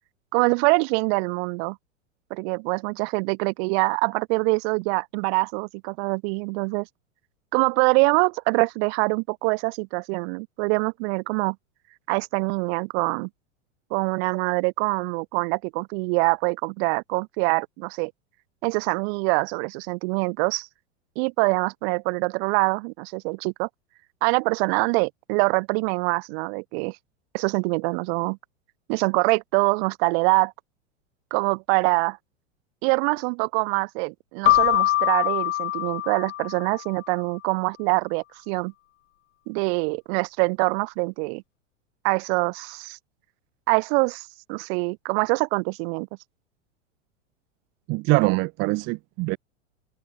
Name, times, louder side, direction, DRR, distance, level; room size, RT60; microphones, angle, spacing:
voice 1, 0.3-1.8 2.3-6.9 7.5-11.6 12.1-13.3 13.9-18.1 18.6-20.7 21.2-23.7 24.2-27.0 27.3-28.4 28.9-30.5 31.3-32.2 32.8-38.7 39.5-41.4 42.0-43.0 43.7-46.1, right 35 dB, 55° right, 2.9 m, -24 dB
Keyboard (musical), 34.5-37.0, left 15 dB, 70° left, 1.0 m, -23 dB
voice 2, 47.9-49.4, right 26 dB, 35° right, 0.4 m, -23 dB
hypercardioid pair, 100°, 38 cm